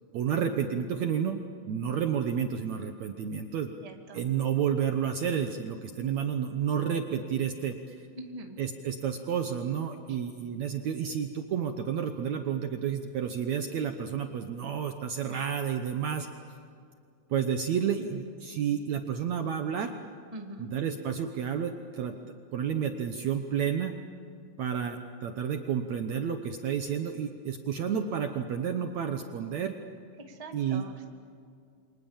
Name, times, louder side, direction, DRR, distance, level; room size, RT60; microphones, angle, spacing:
voice 1, 0.1-1.4 1.7-3.7 4.1-8.1 8.6-16.3 17.3-19.9 20.6-22.1 22.5-23.9 24.6-29.7 30.5-30.8, right 8 dB, 65° right, 6 dB, 2.0 m, -30 dB
voice 2, 3.8-4.2 8.2-8.6 15.3-15.5 20.3-20.7 30.3-31.1, right 2 dB, 15° right, 3 dB, 1.5 m, -43 dB
29.5 x 25.5 x 7.3 m, 2.3 s
omnidirectional pair, 4.1 m